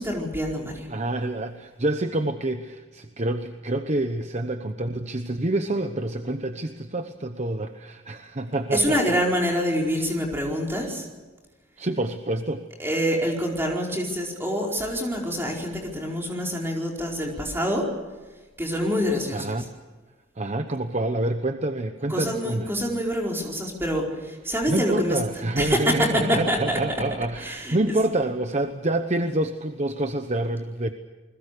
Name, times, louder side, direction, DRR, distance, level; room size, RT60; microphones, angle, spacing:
voice 1, 0.0-0.9 8.7-11.1 12.8-17.9 18.6-19.7 22.1-27.1 27.3-28.0, equal, 10° right, -1 dB, 4.6 m, -26 dB
voice 2, 0.9-9.0 11.8-12.6 19.3-19.6 20.4-22.7 24.7-30.9, right 1 dB, 35° right, 8 dB, 1.0 m, -27 dB
29.0 x 21.0 x 6.8 m, 1.3 s
head